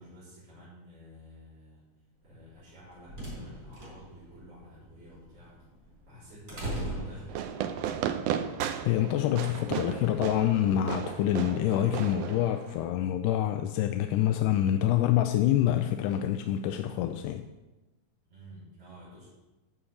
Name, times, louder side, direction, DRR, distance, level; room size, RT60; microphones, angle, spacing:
voice 1, 0.0-1.9 2.2-5.6 6.1-8.0 18.3-19.3, equal, 45° right, -12 dB, 4.8 m, -51 dB
sound 1, 2.6-7.8, right 1 dB, 25° right, 4.7 m, -40 dB
Fireworks, 7.3-12.8, right 9 dB, 85° right, 1.4 m, -34 dB
voice 2, 8.9-17.4, left 11 dB, 90° left, 7 dB, 2.2 m, -26 dB
9.8 x 6.5 x 7.1 m, 1.1 s
omnidirectional pair, 3.6 m